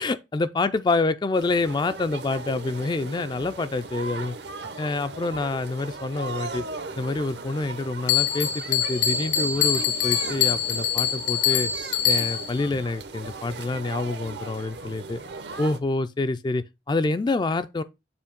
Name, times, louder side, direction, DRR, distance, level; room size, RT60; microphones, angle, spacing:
voice 1, 0.0-4.4 4.8-6.6 7.0-11.7 12.0-15.2 15.6-17.8, left 3 dB, 25° left, 0.3 m, -27 dB
sound 1, 1.3-15.8, right 3 dB, 70° right, 0.8 m, -38 dB
Bell, 8.1-12.6, left 8 dB, 75° left, 1.1 m, -24 dB
6.9 x 2.7 x 5.1 m
head